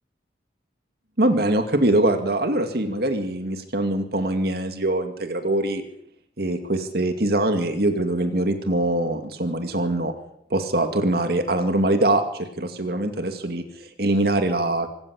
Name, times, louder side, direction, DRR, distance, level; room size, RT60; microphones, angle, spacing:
voice 1, 1.2-5.8 6.4-10.1 10.5-14.9, right 1 dB, 55° right, 6 dB, 2.4 m, -23 dB
26.0 x 15.0 x 8.4 m, 0.70 s
head